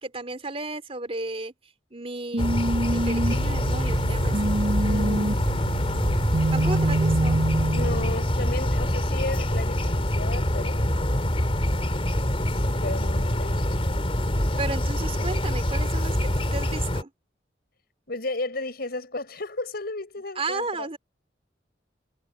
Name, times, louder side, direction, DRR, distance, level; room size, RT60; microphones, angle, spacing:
voice 1, 0.0-1.5 1.9-2.5 2.8-4.5 6.5-7.4 14.6-17.1 20.3-21.0, right 3 dB, 35° right, 3.4 m, -33 dB
sound 1, 2.3-8.3, right 2 dB, 65° right, 1.4 m, -26 dB
sound 2, 2.4-17.0, left 1 dB, 35° left, 3.5 m, -25 dB
sound 3, 3.2-16.8, equal, ahead, 7.9 m, -48 dB
voice 2, 4.8-5.4 7.6-10.9 12.5-13.7 18.1-20.9, left 2 dB, 60° left, 6.2 m, -34 dB
head